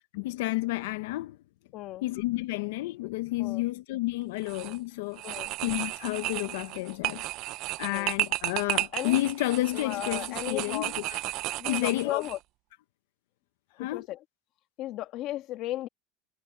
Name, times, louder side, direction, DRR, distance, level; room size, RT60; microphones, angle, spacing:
voice 1, 0.1-1.4 2.0-5.2 5.6-7.2 7.8-11.2 11.7-12.2 13.8-14.1, left 18 dB, 90° left, 0.6 m, -30 dB
voice 2, 1.7-2.1 3.4-3.6 5.2-5.5 7.8-8.1 8.9-9.2 9.7-10.9 11.6-12.4 13.8-14.2 14.8-15.9, left 15 dB, 45° left, 1.6 m, -35 dB
sound 1, 4.4-4.8 5.2-12.4, right 18 dB, 45° right, 0.3 m, -33 dB
cardioid pair, 170°, 0 cm